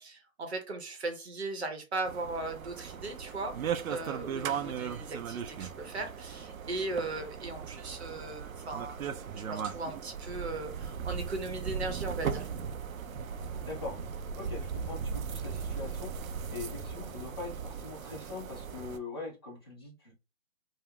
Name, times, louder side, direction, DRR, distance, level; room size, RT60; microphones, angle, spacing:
voice 1, 0.0-3.5 3.9-9.1 9.3-12.5, right 2 dB, 50° right, 5 dB, 0.8 m, -38 dB
sound 1, 2.0-19.0, right 7 dB, 80° right, 0.5 m, -38 dB
voice 2, 13.6-14.0 14.4-16.1 16.5-20.1, left 3 dB, 20° left, -5 dB, 0.6 m, -42 dB
3.3 x 2.1 x 2.2 m, 0.28 s
hypercardioid pair, 160°, 41 cm